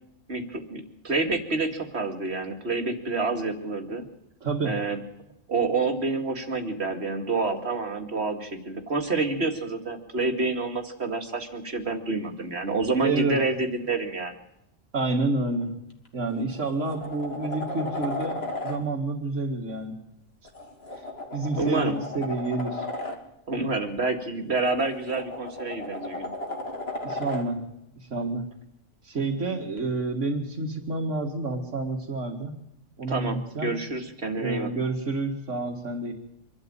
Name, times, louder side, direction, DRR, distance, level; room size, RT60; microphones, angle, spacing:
voice 1, 0.3-4.0 4.6-5.0 5.5-14.3 21.6-21.9 23.5-26.3 33.1-34.7, right 3 dB, 55° right, 5 dB, 2.5 m, -28 dB
voice 2, 4.4-4.8 12.9-13.4 14.9-15.7 16.1-20.0 21.0-21.1 21.3-22.9 27.0-27.6 28.0-28.5 29.0-32.5 33.0-33.8 34.4-36.1, right 3 dB, 80° right, -2 dB, 2.5 m, -29 dB
sound 1, 15.9-16.1 16.5-18.8 20.4-23.2 24.7-27.5 29.8-29.9, left 1 dB, 55° left, 3.1 m, -35 dB
25.5 x 12.5 x 9.0 m, 0.83 s
omnidirectional pair, 1.3 m